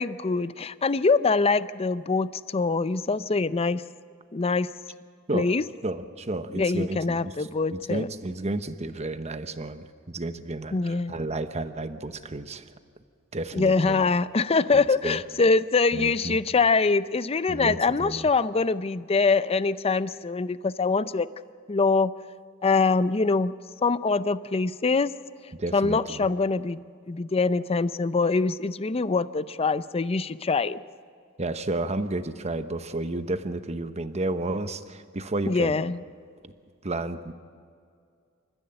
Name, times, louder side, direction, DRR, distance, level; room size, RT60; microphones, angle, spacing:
voice 1, 0.0-3.8 4.3-4.7 5.3-5.6 6.5-8.1 10.7-11.1 13.5-21.3 21.7-22.1 22.6-23.5 23.8-25.1 25.7-26.8 27.1-30.8 35.5-36.0, left 4 dB, 30° left, 15 dB, 0.5 m, -24 dB
voice 2, 5.8-7.3 7.7-12.6 13.3-14.0 14.7-15.2 15.9-16.4 17.5-18.3 25.6-26.3 31.4-35.7 36.4-36.5 36.8-37.3, right 2 dB, 30° right, 10 dB, 1.0 m, -32 dB
28.0 x 14.5 x 7.7 m, 2.2 s
head